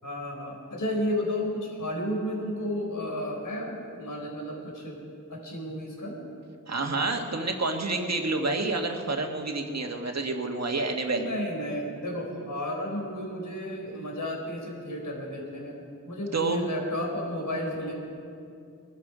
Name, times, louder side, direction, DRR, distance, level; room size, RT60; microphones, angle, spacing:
voice 1, 0.0-5.0 5.3-6.1 11.1-15.7 16.0-17.9, left 1 dB, 65° left, -1 dB, 4.3 m, -32 dB
voice 2, 6.7-11.3 16.3-16.6, right 3 dB, 50° right, 3 dB, 1.7 m, -28 dB
23.0 x 12.0 x 5.0 m, 2.5 s
wide cardioid pair, 90°, 33 cm